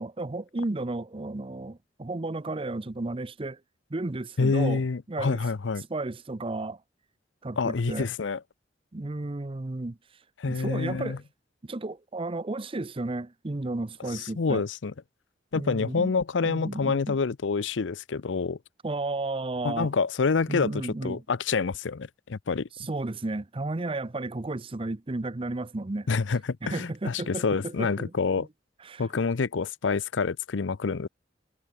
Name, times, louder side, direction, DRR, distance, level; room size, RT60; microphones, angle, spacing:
voice 1, 0.0-3.6 3.9-4.8 5.1-5.4 5.9-6.8 7.4-8.1 8.9-10.0 10.5-11.2 11.6-14.6 15.5-16.1 16.4-17.2 18.8-19.9 20.5-21.2 22.8-26.1 26.6-28.1 28.4-28.5 28.8-29.1, right 2 dB, 30° right, 0.7 m, -33 dB
voice 2, 4.4-5.8 7.6-8.4 10.4-11.2 14.1-14.9 15.5-18.6 19.6-22.7 26.1-28.5 29.0-31.1, left 4 dB, 90° left, 0.6 m, -27 dB
head